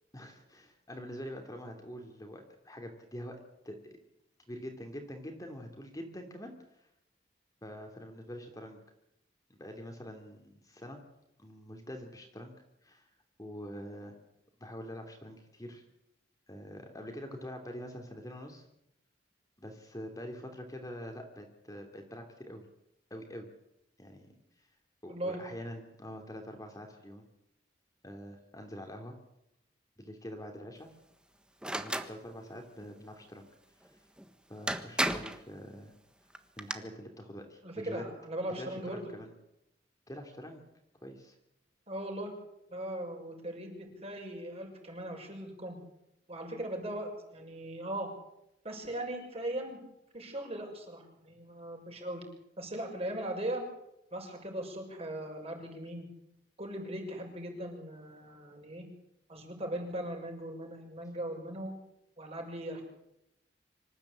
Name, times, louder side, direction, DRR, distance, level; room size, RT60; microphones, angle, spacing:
voice 1, 0.1-3.4 3.6-3.8 4.5-6.9 7.6-8.8 9.6-11.0 11.4-12.5 12.8-13.1 13.4-14.1 14.6-15.8 16.5-18.7 19.6-22.6 23.1-23.5 24.0-24.3 24.6-24.7 25.0-27.2 28.0-29.2 30.0-30.9 31.7-33.4 33.8-33.9 34.5-35.9 36.6-38.0 38.6-39.3 40.1-40.6 41.0-41.3, equal, 20° left, 3 dB, 2.9 m, -45 dB
voice 2, 25.1-25.4 37.6-39.1 41.9-42.3 42.7-45.8 46.3-48.1 48.6-49.9 50.1-52.2 52.6-53.7 54.1-56.1 56.6-58.9 59.3-61.7 62.2-62.8, right 1 dB, 35° right, 2 dB, 6.5 m, -39 dB
sound 1, 31.6-32.1 34.2-34.3 34.7-35.4 36.4-36.7, right 1 dB, 5° right, 1.4 m, -32 dB
25.5 x 15.0 x 8.7 m, 0.82 s
head